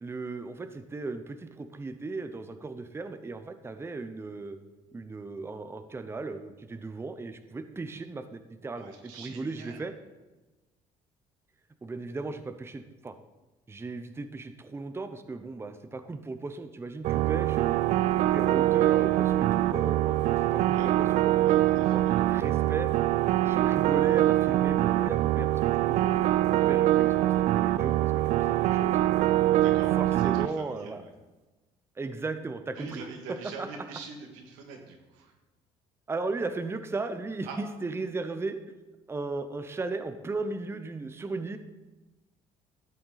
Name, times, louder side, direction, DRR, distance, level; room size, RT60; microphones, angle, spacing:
voice 1, 0.0-4.6 4.9-9.9 11.8-13.1 13.7-17.8 18.3-22.9 23.4-26.1 26.5-29.0 30.0-31.0 32.0-33.0 33.6-33.7 36.1-38.6 39.1-41.6, right 3 dB, 20° right, 9 dB, 0.7 m, -36 dB
voice 2, 8.7-9.8 20.7-20.9 21.4-22.3 28.5-29.0 29.6-31.1 32.8-35.3 37.5-37.6, right 5 dB, 90° right, 2 dB, 1.8 m, -44 dB
sound 1, 17.0-30.5, right 14 dB, 65° right, 0.4 m, -24 dB
12.5 x 7.6 x 4.0 m, 1.2 s
supercardioid pair, 85°, 13 cm